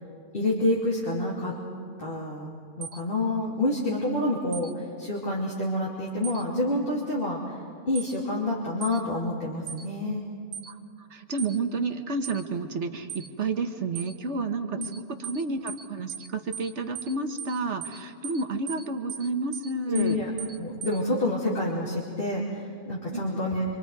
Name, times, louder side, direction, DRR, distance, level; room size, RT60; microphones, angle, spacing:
voice 1, 0.3-1.5 2.0-2.5 2.8-7.4 7.9-10.2 14.8-14.9 19.9-20.3 20.6-23.7, left 1 dB, 45° left, -5 dB, 3.1 m, -28 dB
sound 1, 2.8-3.0 4.5-4.7 6.2-6.4 7.9-8.1 8.8-9.0 9.7-9.8 10.5-10.7 11.4-11.5 12.2-12.4 13.1-13.3 13.9-14.1 14.8-15.0 15.2-15.4 15.7-16.3 16.5-16.7 16.9-17.1 17.4-17.5 17.8-18.0 18.2-18.4 18.7-18.8 19.1-19.3 19.5-19.7 19.9-20.1 20.4-20.5 20.8-21.0, right 8 dB, 80° right, 1.2 m, -37 dB
voice 2, 10.7-20.2 23.1-23.4, right 3 dB, 60° right, 6 dB, 1.6 m, -31 dB
26.5 x 26.5 x 4.8 m, 2.4 s
omnidirectional pair, 1.3 m